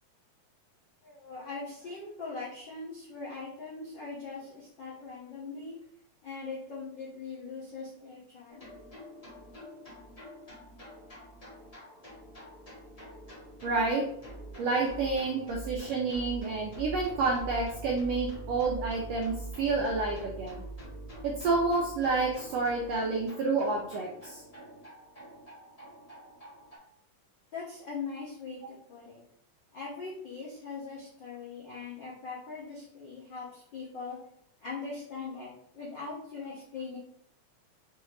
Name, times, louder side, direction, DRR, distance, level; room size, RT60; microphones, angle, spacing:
voice 1, 1.0-5.8 6.2-8.7 27.5-29.2 29.7-34.2 34.6-37.0, left 4 dB, 75° left, -8 dB, 1.0 m, -41 dB
sound 1, 8.5-26.8, right 2 dB, 40° left, 0.5 m, -45 dB
voice 2, 13.6-14.0 14.6-20.5 21.2-24.4, right 3 dB, 85° right, -1 dB, 1.4 m, -29 dB
5.5 x 2.7 x 3.2 m, 0.68 s
omnidirectional pair, 3.7 m